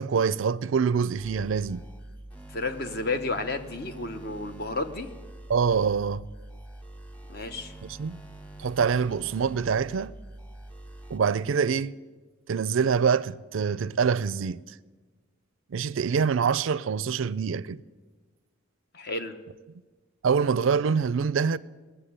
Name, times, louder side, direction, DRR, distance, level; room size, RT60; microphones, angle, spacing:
voice 1, 0.0-1.8 5.5-6.2 7.8-8.2 8.6-10.1 11.1-12.0 12.5-14.6 15.7-17.8 20.2-21.6, right 6 dB, 70° right, 0.4 m, -25 dB
sound 1, 1.2-11.2, right 1 dB, 5° left, 1.1 m, -45 dB
voice 2, 2.5-5.1 7.3-7.7 18.9-19.4, left 3 dB, 50° left, 0.9 m, -32 dB
19.5 x 7.1 x 8.7 m
head